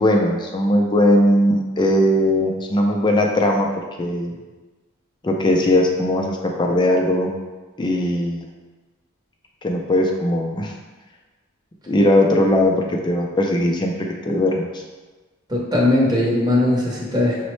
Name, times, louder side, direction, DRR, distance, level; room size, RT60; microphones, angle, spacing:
voice 1, 0.0-3.7 4.0-4.3 5.2-7.3 7.8-8.5 9.6-10.7 11.9-14.7, left 1 dB, 20° left, 1 dB, 0.4 m, -19 dB
voice 2, 15.5-17.4, left 1 dB, 20° right, -4 dB, 0.8 m, -19 dB
5.9 x 2.1 x 3.1 m, 1.3 s
head